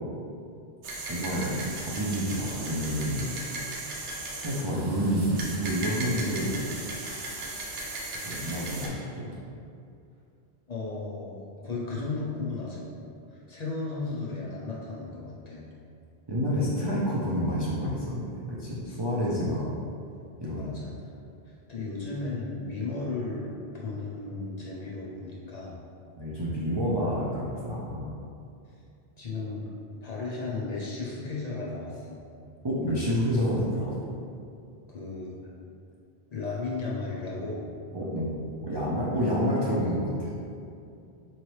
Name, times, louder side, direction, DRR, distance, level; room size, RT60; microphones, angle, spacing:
sound 1, 0.8-8.9, right 2 dB, 75° right, 0.9 m, -37 dB
voice 1, 1.1-3.4 3.9-4.0 4.4-6.6 8.2-9.3 16.3-19.7 20.4-20.7 26.2-28.1 32.6-33.9 37.9-38.3 38.6-40.3, equal, 40° right, -8 dB, 0.4 m, -29 dB
voice 2, 10.7-12.9 13.3-15.7 19.5-19.8 20.6-20.9 21.5-25.8 29.2-29.6 30.0-32.2 34.9-35.4 36.3-37.7, left 3 dB, 50° left, -5 dB, 0.6 m, -35 dB
4.0 x 3.1 x 3.1 m, 2.5 s
omnidirectional pair, 1.1 m